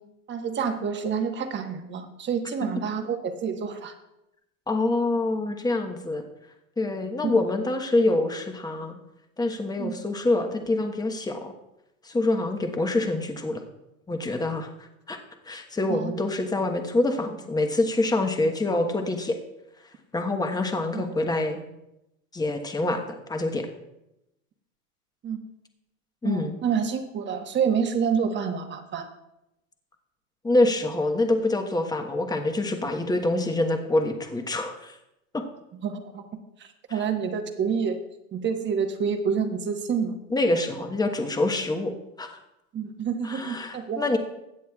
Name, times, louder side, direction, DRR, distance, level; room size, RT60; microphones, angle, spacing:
voice 1, 0.3-3.9 7.2-7.4 9.8-9.9 15.9-16.1 20.9-21.1 25.2-25.4 26.2-29.1 35.8-38.0 38.3-40.1 42.7-44.2, right 6 dB, 25° right, 6 dB, 1.3 m, -28 dB
voice 2, 4.7-6.2 6.8-9.0 9.4-11.5 12.0-13.6 14.1-15.2 15.4-19.4 20.1-21.6 22.3-23.7 26.2-26.6 30.4-35.0 35.3-35.4 36.9-37.0 40.3-42.4 43.2-44.2, left 2 dB, 10° left, 5 dB, 1.2 m, -26 dB
21.5 x 8.1 x 2.4 m, 0.89 s
hypercardioid pair, 115°, 40 cm